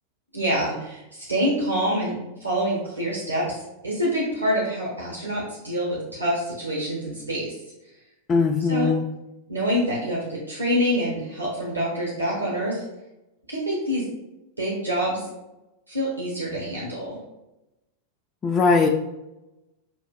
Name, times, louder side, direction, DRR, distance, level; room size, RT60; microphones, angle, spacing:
voice 1, 0.3-7.6 8.7-8.9 9.5-12.9 13.5-14.1 14.6-15.3 15.9-17.2, equal, 85° right, -5 dB, 1.0 m, -26 dB
voice 2, 8.3-9.0 18.4-18.9, left 4 dB, 20° left, -2 dB, 0.3 m, -20 dB
6.3 x 2.5 x 2.4 m, 0.96 s
figure-of-eight pair, 90°, 0 cm